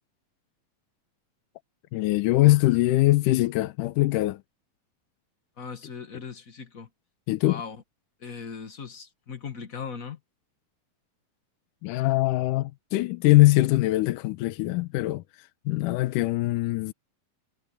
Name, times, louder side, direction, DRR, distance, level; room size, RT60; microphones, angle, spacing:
voice 1, 1.9-4.4 7.3-7.6 11.8-16.9, left 18 dB, 85° left, 2.3 m, -22 dB
voice 2, 5.6-6.9 7.5-7.8 8.2-10.2, left 6 dB, 35° left, 1.6 m, -38 dB
omnidirectional pair, 3.7 m